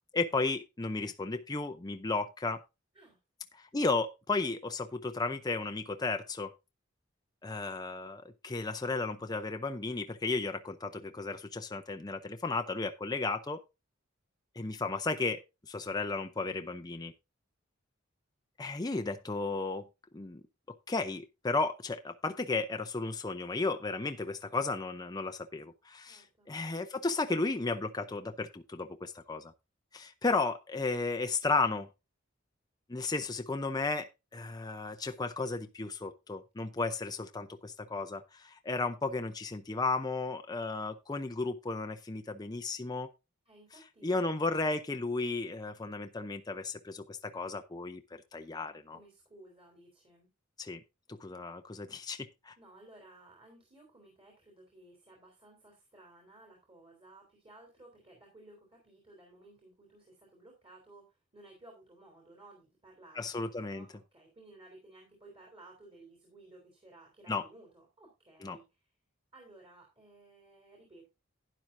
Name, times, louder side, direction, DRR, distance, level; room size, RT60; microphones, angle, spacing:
voice 1, 0.1-2.6 3.6-6.5 7.4-13.6 14.6-17.1 18.6-19.9 20.1-20.4 20.9-29.5 29.9-31.9 32.9-43.1 44.0-49.0 50.6-50.8 51.1-52.6 63.2-63.8 67.3-67.4 68.4-68.6, left 3 dB, 20° left, 0.6 m, -34 dB
voice 2, 16.4-16.8 26.0-26.5 43.5-44.2 48.9-50.3 52.6-68.9 69.3-71.1, right 2 dB, 30° right, 3.6 m, -57 dB
12.0 x 10.0 x 2.6 m
head